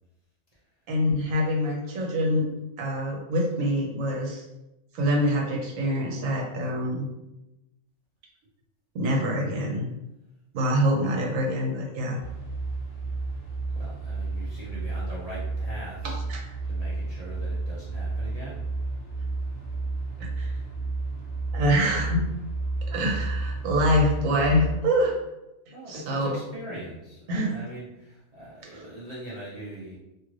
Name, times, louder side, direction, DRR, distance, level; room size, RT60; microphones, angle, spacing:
voice 1, 0.9-2.5 2.8-4.4 4.9-7.0 8.9-9.9 10.5-12.2 16.3-16.5 20.2-20.5 21.5-22.3 22.9-25.2 25.9-26.4 27.3-27.5 28.7-28.8, equal, 75° right, -1 dB, 1.1 m, -25 dB
sound 1, 12.2-24.7, right 3 dB, 25° left, 1.0 m, -31 dB
voice 2, 13.7-16.0 16.7-18.6 25.7-30.0, right 1 dB, 45° right, -8 dB, 0.5 m, -41 dB
2.6 x 2.5 x 3.0 m, 0.94 s
omnidirectional pair, 1.4 m